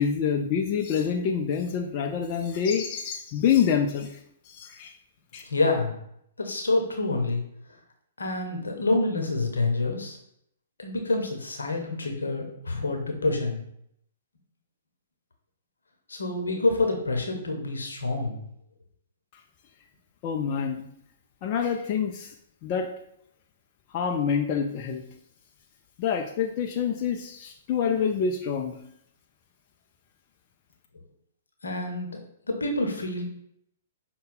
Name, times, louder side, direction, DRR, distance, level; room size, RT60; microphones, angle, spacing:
voice 1, 0.0-4.2 4.5-4.9 5.3-5.4 20.2-20.8 21.4-22.3 22.6-22.9 23.9-25.0 26.0-28.8, left 7 dB, 40° left, 2 dB, 0.4 m, -26 dB
voice 2, 5.4-5.9 6.4-7.4 8.2-10.2 10.8-13.6 16.1-18.4 31.6-32.2 32.5-33.2, left 2 dB, 80° left, 2 dB, 0.9 m, -27 dB
5.3 x 2.2 x 3.9 m, 0.72 s
figure-of-eight pair, 120°, 0 cm